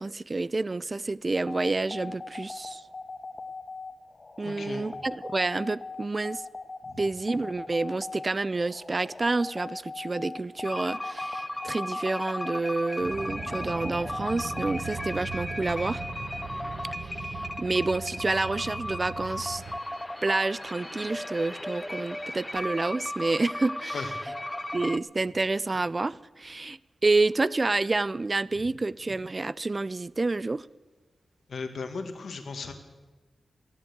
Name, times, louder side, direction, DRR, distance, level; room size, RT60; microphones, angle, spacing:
voice 1, 0.0-2.8 4.4-6.4 7.0-16.0 17.0-19.6 20.2-24.0 24.7-30.6, right 3 dB, 40° right, 0.4 m, -29 dB
sound 1, 1.4-14.8, left 3 dB, 45° left, 1.5 m, -40 dB
voice 2, 4.4-4.8 6.8-7.0 23.9-24.1 31.5-32.7, left 4 dB, 75° left, 1.7 m, -36 dB
sound 2, 10.6-25.0, left 1 dB, 20° left, 0.7 m, -36 dB
sound 3, 13.0-19.8, right 5 dB, 65° right, 0.9 m, -39 dB
13.5 x 11.5 x 7.9 m
cardioid pair, 45°, 0 cm